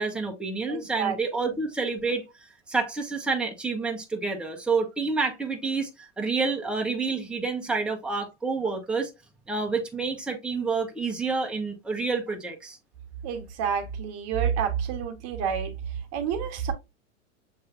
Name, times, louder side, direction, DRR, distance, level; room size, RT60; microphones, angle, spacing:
voice 1, 0.0-2.2 2.7-9.1 9.5-12.8, right 4 dB, 5° right, 1.1 m, -28 dB
voice 2, 0.7-1.2 13.2-15.7 16.1-16.7, right 7 dB, 45° right, 1.1 m, -28 dB
7.0 x 3.1 x 2.4 m
hypercardioid pair, 110°, 36 cm